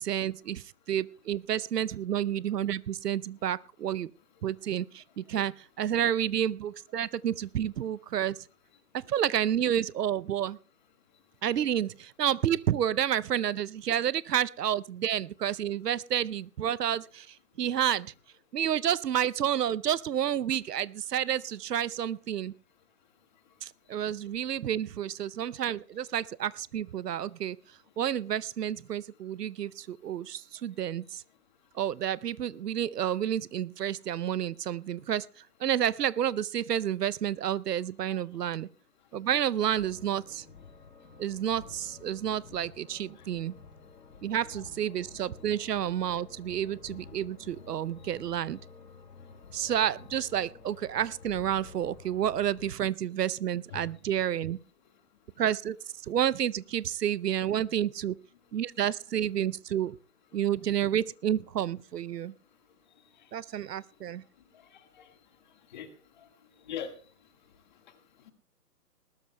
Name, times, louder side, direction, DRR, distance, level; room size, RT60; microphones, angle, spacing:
voice 1, 0.0-4.1 4.4-8.4 8.9-10.6 11.4-18.1 18.5-22.5 23.6-27.6 28.0-31.2 31.7-38.7 39.1-40.4 41.2-43.5 44.2-48.6 49.5-54.6 55.4-55.8 56.1-58.2 58.5-60.0 60.3-62.3 63.3-64.2, right 10 dB, 80° right, 19 dB, 0.7 m, -30 dB
sound 1, 39.7-52.7, left 5 dB, 75° left, 2.2 m, -51 dB
voice 2, 64.7-65.1 65.7-65.9 66.2-66.3 66.6-66.9, left 8 dB, 30° left, 7 dB, 1.7 m, -40 dB
19.5 x 19.5 x 2.2 m, 0.40 s
hypercardioid pair, 165°, 47 cm